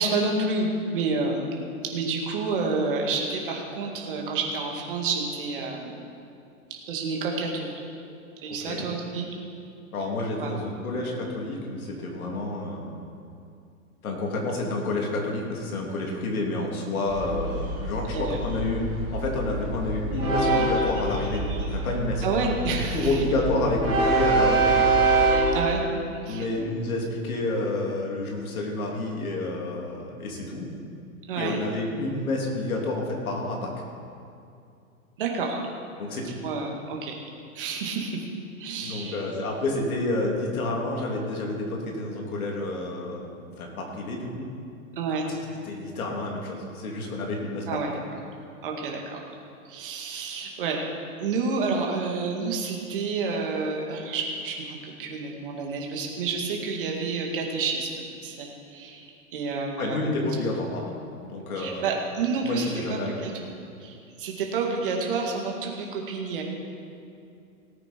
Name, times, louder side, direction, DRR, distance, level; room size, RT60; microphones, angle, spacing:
voice 1, 0.0-1.5 1.9-6.0 6.9-7.7 8.4-9.3 10.4-10.5 18.1-18.4 22.2-23.2 25.2-25.8 26.1-26.4 31.3-31.6 35.2-35.6 36.4-37.2 37.5-38.2 38.6-39.2 45.0-45.3 47.7-48.0 48.6-49.2 49.7-50.8 51.2-57.9 58.2-59.1 59.3-60.0 61.6-63.3 63.8-66.4, right 4 dB, 40° right, 0 dB, 2.0 m, -29 dB
voice 2, 9.9-12.9 14.0-18.8 19.1-21.4 21.7-24.8 26.3-30.7 31.4-33.7 36.0-36.4 38.8-44.5 45.3-45.4 45.6-47.9 59.8-60.9 61.2-61.9 62.4-63.2, left 2 dB, 80° left, -1 dB, 3.3 m, -29 dB
Train, 17.1-25.7, right 2 dB, 10° right, 2.3 m, -25 dB
18.0 x 8.9 x 4.5 m, 2.5 s
hypercardioid pair, 180°, 42 cm